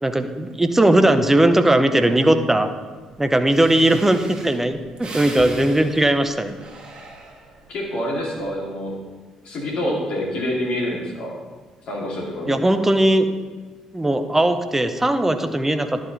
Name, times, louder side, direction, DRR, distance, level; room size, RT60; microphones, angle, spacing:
voice 1, 0.0-2.7 3.2-6.5 12.5-13.3 13.9-16.0, right 1 dB, 15° right, 9 dB, 0.8 m, -18 dB
Breathing, 3.2-3.3 3.5-7.7 8.2-8.6, right 2 dB, 45° right, 1.6 m, -39 dB
voice 2, 7.7-9.0 9.4-11.3 11.9-12.6, left 1 dB, 55° left, -3 dB, 2.3 m, -26 dB
11.0 x 4.9 x 4.1 m, 1.4 s
figure-of-eight pair, 45°, 2 cm